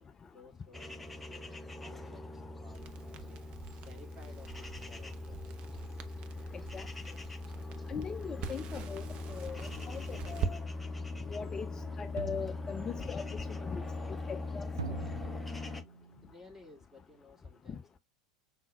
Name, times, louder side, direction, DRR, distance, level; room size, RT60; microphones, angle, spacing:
voice 1, 0.0-3.5 3.8-5.5 16.2-18.0, left 2 dB, 10° right, 2.3 m, -57 dB
sound 1, 0.7-15.8, left 3 dB, 5° left, 0.8 m, -41 dB
Crackle, 2.7-10.5, right 6 dB, 40° right, 0.8 m, -44 dB
voice 2, 6.5-6.9 7.9-10.6 11.3-14.7 17.7-17.8, left 6 dB, 20° left, 0.4 m, -41 dB
sound 2, 9.6-16.3, right 5 dB, 75° right, 0.4 m, -48 dB
5.8 x 3.8 x 2.2 m
figure-of-eight pair, 80°, 3 cm